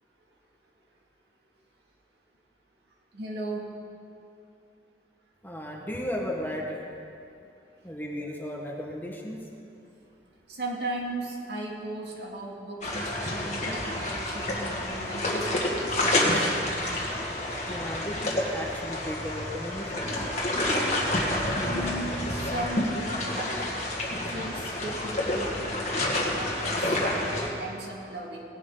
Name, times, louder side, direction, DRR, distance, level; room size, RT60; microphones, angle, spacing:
voice 1, 3.1-3.7 10.5-16.4 21.7-23.6 24.1-28.4, right 2 dB, 70° right, -2 dB, 2.2 m, -37 dB
voice 2, 5.4-6.8 7.8-9.4 17.6-20.1, equal, 10° left, -1 dB, 1.3 m, -35 dB
sound 1, 12.8-27.5, left 1 dB, 40° left, 1.8 m, -29 dB
18.5 x 11.0 x 3.9 m, 2.6 s
head